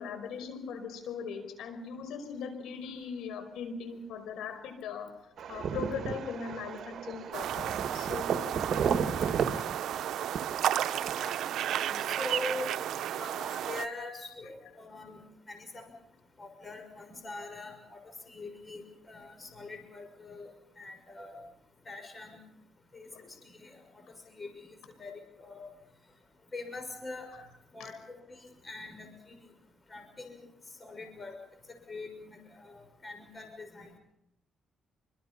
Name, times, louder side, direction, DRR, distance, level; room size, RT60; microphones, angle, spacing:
voice 1, 0.0-5.1 5.5-9.0 11.8-12.1 23.1-23.3 27.3-27.4 27.8-27.9, left 6 dB, 85° left, 8 dB, 5.2 m, -40 dB
sound 1, 5.4-11.2, right 7 dB, 60° right, 2.0 m, -34 dB
sound 2, 7.3-13.9, right 11 dB, 75° right, 1.0 m, -33 dB
voice 2, 12.1-12.7 13.1-15.2 15.5-15.9 16.4-20.5 20.8-21.4 21.9-22.4 22.9-23.1 23.4-23.8 24.3-25.7 26.5-27.3 27.7-29.4 29.9-30.5 30.8-31.4 31.7-33.9, left 2 dB, 30° left, 5 dB, 6.2 m, -43 dB
26.5 x 24.5 x 5.6 m, 0.78 s
cardioid pair, 90°, 0 cm